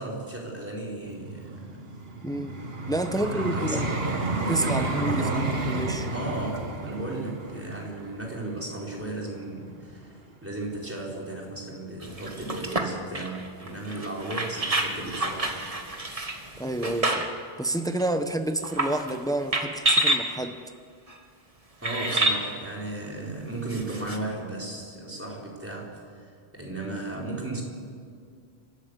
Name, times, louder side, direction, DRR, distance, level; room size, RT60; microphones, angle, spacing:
voice 1, 0.0-1.9 3.3-4.2 4.4-5.5 6.1-10.1 10.4-15.6 21.8-27.6, right 2 dB, 10° right, -3 dB, 4.4 m, -35 dB
Vehicle, 1.0-10.1 10.7-10.9, right 2 dB, 65° right, 1.9 m, -32 dB
voice 2, 2.2-2.6 2.9-3.9 4.5-6.1 16.6-17.3 17.6-20.6, right 1 dB, 5° left, 8 dB, 0.9 m, -29 dB
sound 1, 12.0-17.4 18.0-18.1 18.6-19.2 19.5-20.3 21.1-21.2 21.8-22.4 23.7-24.2, right 1 dB, 35° right, 1.7 m, -28 dB
29.5 x 13.5 x 8.2 m, 2.1 s
omnidirectional pair, 1.1 m